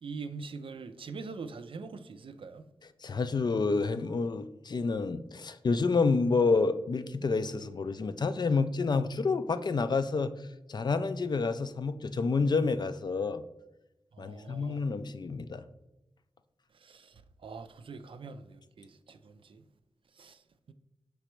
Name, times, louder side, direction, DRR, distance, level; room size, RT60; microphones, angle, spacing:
voice 1, 0.0-2.6 14.1-14.8 16.8-17.1 17.4-19.6 20.2-20.4 20.7-20.8, right 4 dB, 65° right, 0.4 m, -43 dB
voice 2, 3.0-10.3 10.7-13.4 14.2-15.6, left 4 dB, 45° left, 0.3 m, -29 dB
5.0 x 3.3 x 3.0 m
cardioid pair, 40°, 10 cm